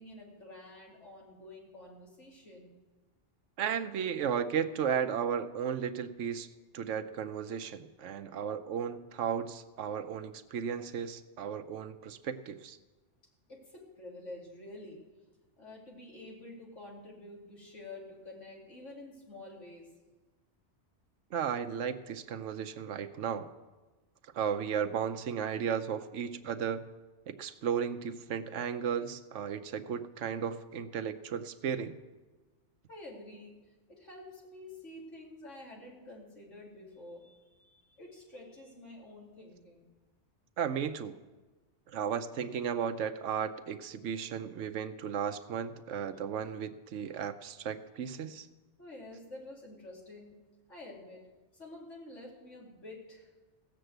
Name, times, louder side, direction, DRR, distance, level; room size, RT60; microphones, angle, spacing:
voice 1, 0.0-2.7 13.5-15.0 15.6-19.9 32.9-33.5 33.9-39.9 48.8-50.3 50.7-51.2 51.5-53.3, left 2 dB, 75° left, -3 dB, 3.1 m, -49 dB
voice 2, 3.6-6.5 6.7-12.8 21.3-23.5 24.3-26.8 27.3-32.0 40.6-41.2 41.9-48.5, right 7 dB, 80° right, 9 dB, 1.1 m, -34 dB
16.5 x 6.9 x 7.9 m, 1.2 s
omnidirectional pair, 1.2 m